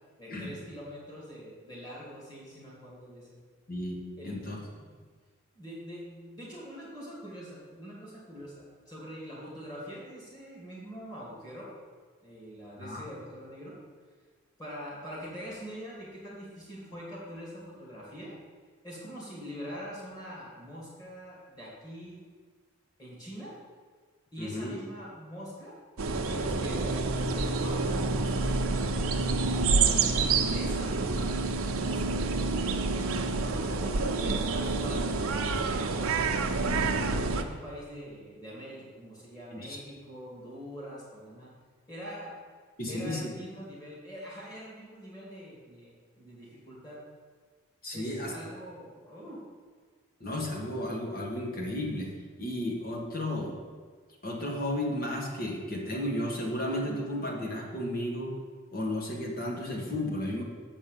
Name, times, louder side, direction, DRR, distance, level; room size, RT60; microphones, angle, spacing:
voice 1, 0.2-3.4 4.2-4.5 4.8-4.9 5.5-11.7 12.2-13.8 14.6-18.3 18.8-22.2 23.0-23.5 24.3-25.7 26.3-29.4 29.9-31.4 31.7-32.2 32.5-35.1 35.5-36.2 36.7-41.5 41.9-42.3 42.9-47.0 47.9-49.4, equal, 20° left, -6 dB, 2.6 m, -44 dB
voice 2, 3.7-4.0 4.2-4.6 12.8-13.1 24.4-24.7 39.5-39.8 42.8-43.2 47.8-48.3 50.2-52.1 52.4-53.5 54.2-58.4 58.7-60.4, left 1 dB, 45° left, 0 dB, 1.5 m, -33 dB
sound 1, 26.0-37.4, right 3 dB, 90° right, 0.7 m, -28 dB
7.5 x 5.4 x 6.9 m, 1.5 s
head